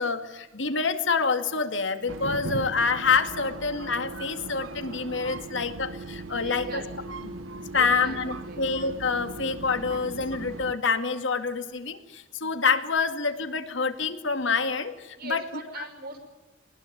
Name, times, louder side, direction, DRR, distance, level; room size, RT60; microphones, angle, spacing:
voice 1, 0.0-6.8 7.2-7.4 7.7-15.4 15.8-15.9, left 5 dB, 70° left, 8 dB, 2.2 m, -27 dB
sound 1, 2.1-10.7, right 3 dB, 85° right, 1.0 m, -38 dB
voice 2, 6.4-7.2 7.7-8.6 15.1-16.2, right 2 dB, 55° right, 6 dB, 5.7 m, -41 dB
22.5 x 20.5 x 9.3 m, 1.1 s
head